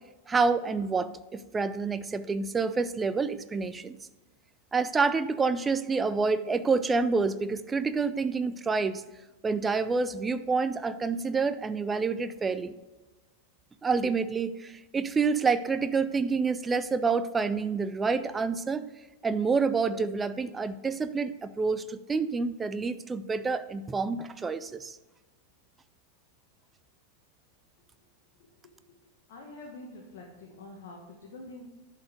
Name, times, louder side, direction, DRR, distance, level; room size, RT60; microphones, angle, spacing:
voice 1, 0.3-4.0 4.7-9.0 9.4-12.7 13.8-18.9 19.2-25.0, right 4 dB, 15° right, 12 dB, 0.4 m, -28 dB
voice 2, 29.3-31.7, left 2 dB, 50° left, -1 dB, 1.5 m, -46 dB
11.5 x 4.7 x 5.0 m, 1.1 s
figure-of-eight pair, 90°, 0 cm